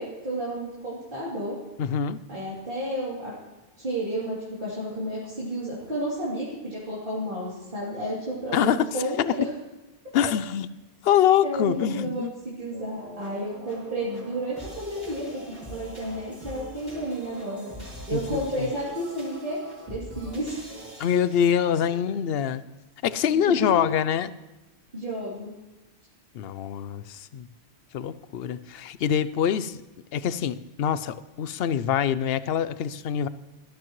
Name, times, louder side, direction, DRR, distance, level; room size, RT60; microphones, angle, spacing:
voice 1, 0.0-1.6 2.3-3.3 3.8-9.5 11.4-17.7 18.1-19.6 19.9-20.7 21.8-22.1 23.3-23.7 24.9-25.6, right 1 dB, 50° right, -9 dB, 3.1 m, -32 dB
voice 2, 1.8-2.2 8.5-8.9 10.1-10.7 11.0-12.3 18.1-18.4 21.0-22.6 23.0-24.3 26.3-27.5 27.9-29.8 30.1-33.3, left 9 dB, 70° left, 15 dB, 0.8 m, -24 dB
sound 1, 12.7-22.0, equal, 10° right, 5.1 m, -43 dB
18.0 x 12.5 x 3.1 m, 1.1 s
omnidirectional pair, 1.1 m